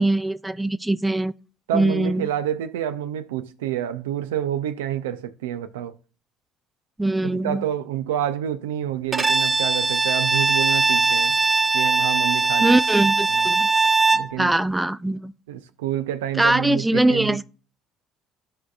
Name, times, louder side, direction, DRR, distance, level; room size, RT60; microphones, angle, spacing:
voice 1, 0.0-1.3 1.7-2.3 7.0-7.6 12.6-13.7 14.4-15.3 16.4-17.4, right 2 dB, 10° right, 0.4 m, -22 dB
voice 2, 1.7-5.9 7.2-11.4 11.7-12.8 13.3-13.5 14.1-14.5 15.5-17.4, right 11 dB, 85° right, 0.5 m, -28 dB
Bowed string instrument, 9.1-14.3, right 3 dB, 30° right, 1.2 m, -20 dB
14.0 x 4.9 x 2.4 m
hypercardioid pair, 65°, 0 cm